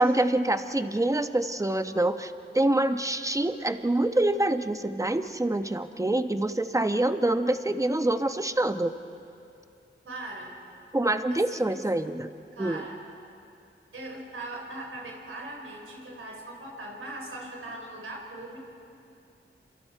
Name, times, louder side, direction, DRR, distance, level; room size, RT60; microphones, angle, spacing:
voice 1, 0.0-8.9 10.9-12.3 12.6-12.8, right 1 dB, 15° right, 8 dB, 1.1 m, -26 dB
voice 2, 10.0-10.5 11.3-11.8 12.5-13.0 13.9-18.6, right 2 dB, 85° right, -1 dB, 4.8 m, -40 dB
29.0 x 26.5 x 4.6 m, 2.6 s
wide cardioid pair, 60°, 21 cm